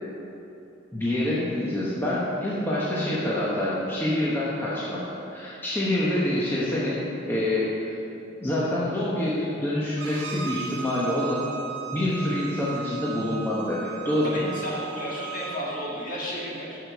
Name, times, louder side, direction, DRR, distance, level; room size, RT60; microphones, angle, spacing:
voice 1, 0.9-5.0 5.3-7.0 7.3-7.9 8.4-11.4 11.9-14.5, left 1 dB, 10° left, -8 dB, 1.0 m, -26 dB
Bowed string instrument, 10.0-15.6, right 6 dB, 85° right, 1.2 m, -37 dB
voice 2, 14.2-16.8, equal, 45° left, -5 dB, 1.8 m, -33 dB
8.6 x 6.6 x 4.6 m, 2.8 s
head